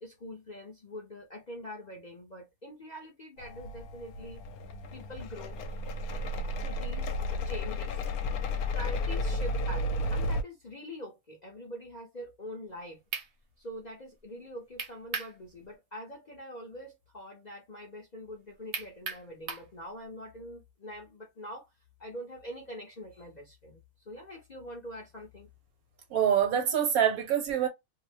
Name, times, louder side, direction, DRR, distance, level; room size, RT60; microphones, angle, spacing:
voice 1, 0.0-4.4 4.9-5.6 6.6-8.0 8.7-13.0 13.6-21.7 22.0-25.5, equal, 45° left, 0.6 m, -44 dB
sound 1, 3.4-10.4, left 1 dB, 75° left, 1.0 m, -33 dB
sound 2, 12.7-12.8 13.1-13.3 14.8-15.4 15.7-15.8 18.7-19.7, right 5 dB, 55° right, 0.9 m, -36 dB
voice 2, 26.1-27.7, right 9 dB, 75° right, 1.3 m, -25 dB
2.7 x 2.0 x 3.1 m
omnidirectional pair, 1.6 m